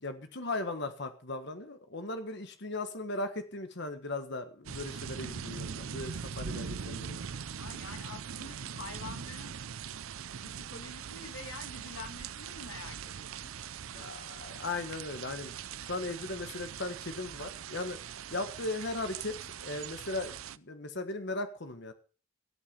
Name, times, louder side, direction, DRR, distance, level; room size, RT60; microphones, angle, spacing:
voice 1, 0.0-7.2 13.9-18.0 18.3-21.9, left 2 dB, 55° left, 8 dB, 1.4 m, -38 dB
sound 1, 4.6-20.6, right 7 dB, 80° right, 0.6 m, -41 dB
voice 2, 7.6-9.5 9.8-9.9 10.4-13.6, left 4 dB, 80° left, 5 dB, 2.5 m, -47 dB
17.0 x 8.9 x 5.4 m, 0.38 s
head